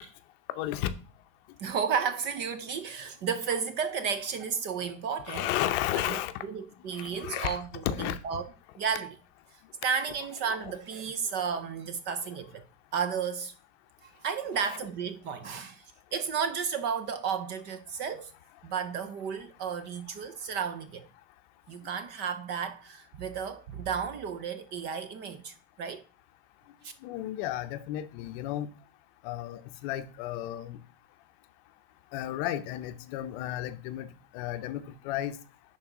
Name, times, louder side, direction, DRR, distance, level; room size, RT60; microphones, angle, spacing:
voice 1, 0.6-0.9 5.3-6.3 6.9-8.2 14.5-14.7 27.0-28.7 29.2-30.8 32.1-34.1 34.3-35.4, left 13 dB, 45° left, 0.7 m, -33 dB
voice 2, 1.6-5.5 6.0-8.4 8.8-9.2 9.8-12.6 12.9-13.5 14.0-15.8 16.1-18.3 18.6-21.1 21.7-26.0 26.8-26.9, right 6 dB, 30° right, 0.5 m, -33 dB
10.5 x 4.0 x 3.8 m
supercardioid pair, 150°, 38 cm